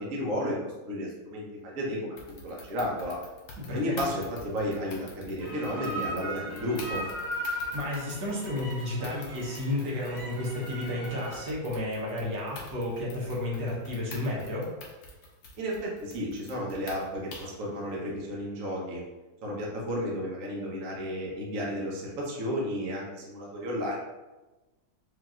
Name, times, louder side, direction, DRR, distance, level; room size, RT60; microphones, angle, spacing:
voice 1, 0.0-2.2 2.4-3.2 3.7-7.0 15.6-19.0 19.4-24.0, equal, 55° right, -3 dB, 1.1 m, -33 dB
sound 1, 2.2-17.6, left 2 dB, 80° left, 1.5 m, -48 dB
voice 2, 3.6-4.0 7.7-14.7, left 1 dB, 75° right, -4 dB, 1.7 m, -32 dB
sound 2, 5.4-11.5, right 1 dB, 40° right, 1.3 m, -38 dB
5.0 x 2.8 x 2.4 m, 1.1 s
omnidirectional pair, 2.0 m